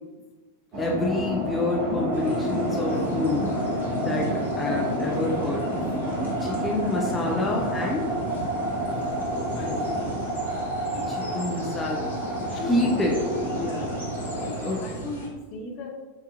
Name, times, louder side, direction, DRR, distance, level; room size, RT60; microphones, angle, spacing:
sound 1, 0.7-14.8, right 1 dB, 40° right, 1.2 m, -29 dB
voice 1, 0.8-4.3 4.6-5.8 6.4-8.0 11.1-12.0 12.6-13.3 14.6-14.8, left 2 dB, 15° left, -2 dB, 0.6 m, -27 dB
sound 2, 2.1-15.3, equal, 80° left, 1.1 m, -38 dB
voice 2, 6.4-6.9 9.6-10.2 10.8-11.3 12.5-13.0 13.5-15.9, left 3 dB, 40° left, 0 dB, 0.9 m, -38 dB
7.2 x 2.8 x 2.4 m, 1.2 s
figure-of-eight pair, 90°, 0 cm